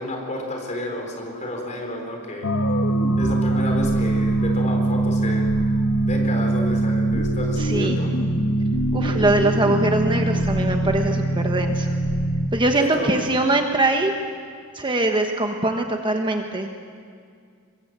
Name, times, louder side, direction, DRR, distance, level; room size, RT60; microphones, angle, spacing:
voice 1, 0.0-2.5 3.2-5.5 6.0-8.1 12.8-13.2, left 1 dB, 35° left, 2 dB, 4.3 m, -31 dB
sound 1, 2.4-12.5, right 2 dB, 85° left, 1.5 m, -22 dB
voice 2, 7.6-8.0 8.9-11.9 12.5-14.1 14.7-16.7, right 2 dB, 20° right, 4 dB, 1.2 m, -22 dB
23.5 x 22.0 x 7.6 m, 2.2 s
head